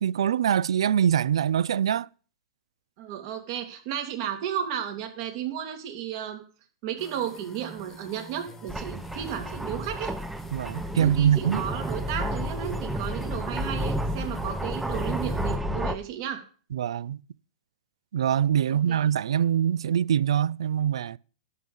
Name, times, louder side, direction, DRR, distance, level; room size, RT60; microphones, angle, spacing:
voice 1, 0.0-2.1 10.5-11.6 16.7-17.2 18.1-21.2, right 9 dB, 80° right, 0.3 m, -24 dB
voice 2, 3.0-6.4 6.8-10.1 11.0-16.4 18.7-19.1, right 10 dB, 50° right, 2.2 m, -33 dB
sound 1, 7.0-15.6, left 1 dB, 15° left, 1.3 m, -46 dB
sound 2, 8.7-16.0, equal, 5° right, 0.7 m, -31 dB
11.5 x 3.8 x 7.6 m
hypercardioid pair, 130°, 3 cm